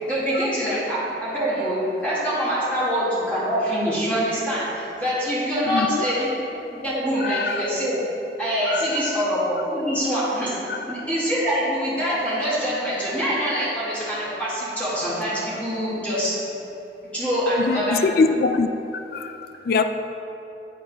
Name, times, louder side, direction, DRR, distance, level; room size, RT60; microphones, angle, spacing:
voice 1, 0.1-6.3 6.7-8.0 8.4-10.6 10.8-16.3 17.1-18.0, equal, 10° left, 1.8 m, -24 dB
voice 2, 5.7-6.1 7.2-7.7 8.7-9.2 10.7-10.8 17.6-18.7 19.1-19.8, left 4 dB, 55° left, 0.3 m, -23 dB
10.0 x 8.7 x 2.3 m
head